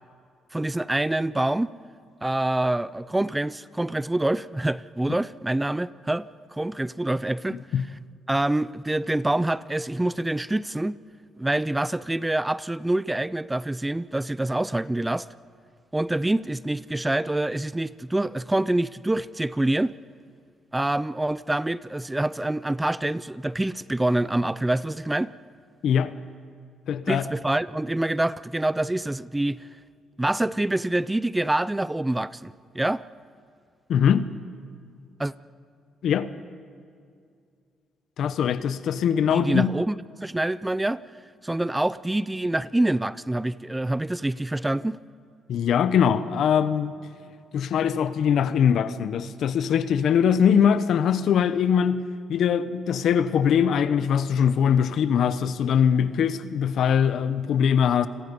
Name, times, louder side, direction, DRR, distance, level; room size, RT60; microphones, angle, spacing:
voice 1, 0.5-1.7 2.2-7.6 8.3-11.0 11.4-15.3 15.9-19.9 20.7-25.3 27.1-29.7 30.2-33.0 35.2-35.3 39.3-41.0 41.4-45.0, right 1 dB, 10° right, 0.4 m, -26 dB
voice 2, 25.8-26.1 26.9-27.2 33.9-34.3 36.0-36.3 38.2-39.7 45.5-46.9 47.5-52.0 52.3-58.1, left 8 dB, 70° left, 1.0 m, -22 dB
29.5 x 22.0 x 5.5 m
cardioid pair, 90°, 0 cm